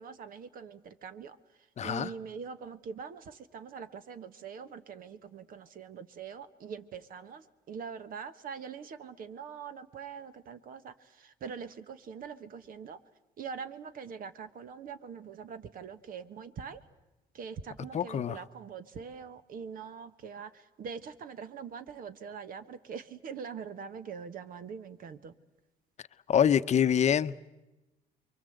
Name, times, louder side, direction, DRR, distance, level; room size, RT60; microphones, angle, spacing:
voice 1, 0.0-1.3 1.8-10.9 11.4-13.0 13.4-16.8 17.4-20.5 20.8-25.3, right 6 dB, 55° right, 12 dB, 1.4 m, -43 dB
voice 2, 1.8-2.1 17.9-18.4 26.3-27.4, left 8 dB, 40° left, 13 dB, 0.8 m, -25 dB
28.5 x 23.5 x 7.9 m, 1.0 s
cardioid pair, 110°, 17 cm